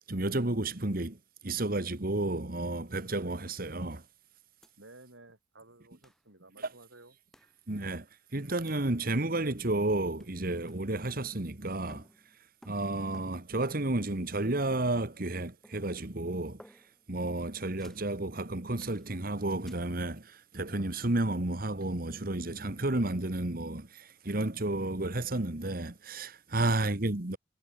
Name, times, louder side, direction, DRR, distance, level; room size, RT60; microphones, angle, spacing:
voice 1, 0.1-1.2 1.4-4.0 7.7-8.1 8.3-12.1 12.7-16.6 17.1-27.4, right 2 dB, 50° right, 1.7 m, -31 dB
sound 1, 4.6-4.7 5.0-5.1 6.0-6.2 7.3-7.6 8.7-8.9 9.6-9.9 10.2-11.6 11.9-14.1 14.7-15.4 15.6-16.1 16.6-17.1 17.8-18.1 18.8-19.1 19.7-19.9, equal, ahead, 4.5 m, -58 dB
voice 2, 4.8-7.1 26.6-27.0, right 2 dB, 85° right, 4.9 m, -55 dB
head